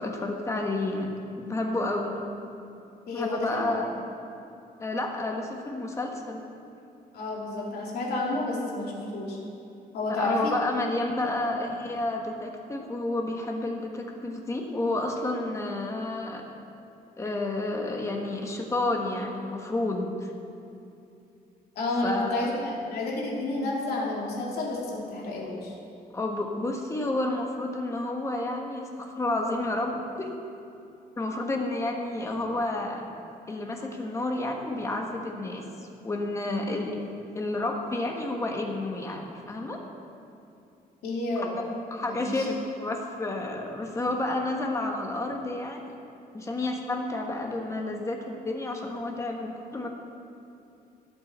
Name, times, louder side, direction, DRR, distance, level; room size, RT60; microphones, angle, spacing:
voice 1, 0.0-2.2 3.1-3.9 4.8-6.4 10.1-16.4 17.2-20.3 22.0-22.5 26.1-30.3 31.2-33.0 33.5-37.0 37.3-39.8 41.3-41.5 41.9-45.8 46.3-49.9, left 2 dB, 20° left, 2 dB, 1.2 m, -30 dB
voice 2, 3.1-3.7 7.1-9.4 9.9-10.5 21.7-25.7 41.0-41.6 42.0-42.5, left 2 dB, 90° left, -3 dB, 2.7 m, -30 dB
18.5 x 7.9 x 4.3 m, 2.7 s
cardioid pair, 170°, 16 cm